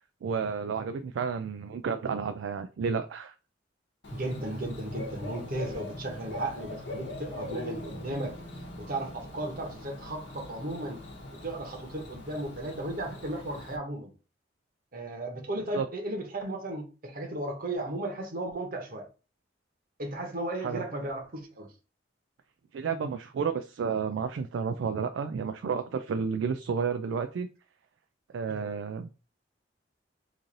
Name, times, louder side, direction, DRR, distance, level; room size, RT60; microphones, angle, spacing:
voice 1, 0.2-3.3 15.7-15.9 20.6-20.8 22.7-27.5 28.3-29.1, right 6 dB, 80° right, 0.3 m, -31 dB
Bird / Cricket, 4.0-13.8, left 1 dB, 70° left, 0.9 m, -41 dB
voice 2, 4.1-8.3 8.8-11.0 11.4-14.1 14.9-19.1 20.0-21.7 28.5-28.7, right 1 dB, 50° right, 1.0 m, -35 dB
3.1 x 2.6 x 3.8 m
head